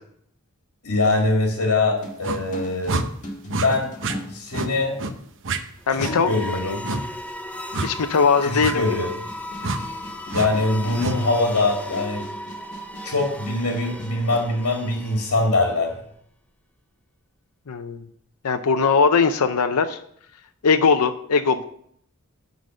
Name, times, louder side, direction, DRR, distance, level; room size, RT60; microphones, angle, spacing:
voice 1, 0.8-3.0 3.4-3.9 4.3-5.0 5.9-6.8 8.4-9.1 10.3-12.2 13.0-16.0, left 2 dB, 70° left, 1 dB, 2.0 m, -23 dB
sound 1, 2.0-5.2 6.1-6.2 8.3-14.5, equal, 35° left, 1.8 m, -39 dB
sound 2, 2.2-2.4 2.9-3.1 3.5-3.7 4.0-4.2 4.5-4.7 5.0-5.1 5.4-5.6 6.0-6.1 6.8-7.0 7.7-7.9 8.6-8.7 9.6-9.8 10.3-10.5 11.0-11.2, right 3 dB, 60° right, 0.8 m, -26 dB
sound 3, 5.8-15.7, left 1 dB, 5° left, 0.6 m, -36 dB
voice 2, 5.9-6.3 7.8-8.8 17.7-18.0 18.4-20.0 20.6-21.6, left 5 dB, 85° left, 8 dB, 0.6 m, -20 dB
11.5 x 4.0 x 7.5 m, 0.67 s
head